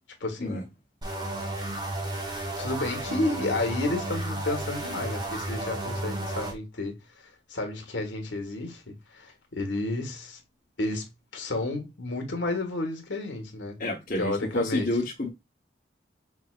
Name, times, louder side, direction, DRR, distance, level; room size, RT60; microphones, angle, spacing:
voice 1, 0.2-0.6 2.6-10.4 10.8-11.1 11.3-13.8 14.2-14.9, left 2 dB, 85° left, 1.5 m, -31 dB
sound 1, 1.0-6.5, right 1 dB, 20° right, 1.0 m, -33 dB
voice 2, 13.8-15.3, left 1 dB, 45° left, 1.1 m, -29 dB
5.5 x 3.4 x 2.4 m
head